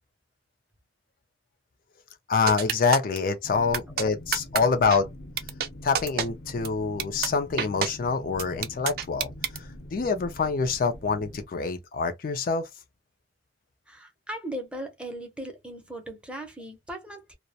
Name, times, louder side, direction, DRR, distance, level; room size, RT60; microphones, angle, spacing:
voice 1, 2.3-5.1 5.8-12.7, left 4 dB, 55° left, 0.4 m, -26 dB
sound 1, 2.5-3.2 3.7-4.0 4.3-4.6 4.9-5.0 5.4-5.7 5.9-6.3 6.6-6.7 7.0-7.3 7.6-7.9 8.4-9.6, right 7 dB, 60° right, 0.4 m, -27 dB
sound 2, 3.4-11.4, left 1 dB, 85° left, 0.8 m, -44 dB
voice 2, 13.9-17.3, right 1 dB, 5° right, 0.6 m, -38 dB
2.3 x 2.0 x 2.7 m
head